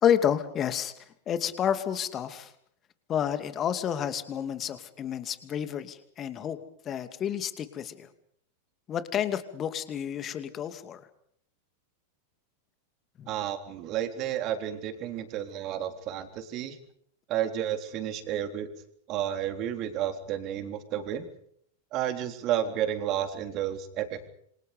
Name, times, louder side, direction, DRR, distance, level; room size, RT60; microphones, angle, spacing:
voice 1, 0.0-0.9 1.3-2.5 3.1-6.6 6.8-8.1 8.9-11.1 13.2-13.3, left 9 dB, 30° left, 10 dB, 2.6 m, -30 dB
voice 2, 13.3-16.8 17.3-18.7 19.1-21.3 21.9-24.3, right 10 dB, 40° right, 7 dB, 3.7 m, -31 dB
27.5 x 26.5 x 5.2 m, 0.67 s
figure-of-eight pair, 90°, 0 cm